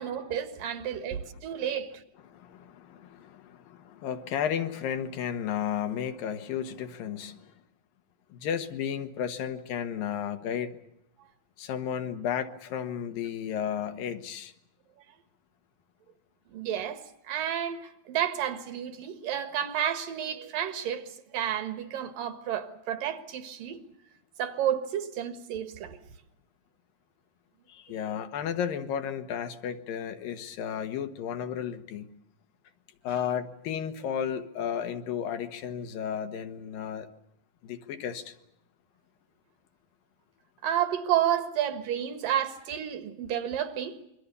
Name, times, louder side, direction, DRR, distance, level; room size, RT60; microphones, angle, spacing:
voice 1, 0.0-2.0 16.5-23.8 24.4-26.0 40.6-44.0, right 10 dB, 75° right, 3.2 m, -31 dB
voice 2, 2.3-7.5 8.3-10.7 11.6-14.5 27.7-32.1 33.0-37.1 37.6-38.3, left 8 dB, 80° left, 3.0 m, -33 dB
27.0 x 23.0 x 6.9 m
omnidirectional pair, 4.0 m